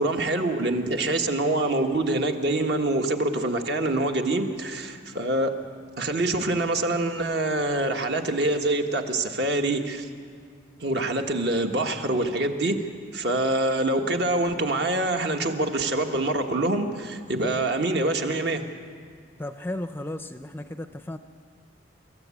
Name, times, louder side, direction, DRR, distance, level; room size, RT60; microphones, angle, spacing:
voice 1, 0.0-5.6 6.0-10.1 10.8-12.8 13.1-18.6, right 2 dB, 55° right, 4 dB, 1.5 m, -25 dB
voice 2, 19.4-21.2, left 1 dB, 10° left, 8 dB, 0.5 m, -34 dB
26.5 x 14.0 x 8.5 m, 2.1 s
head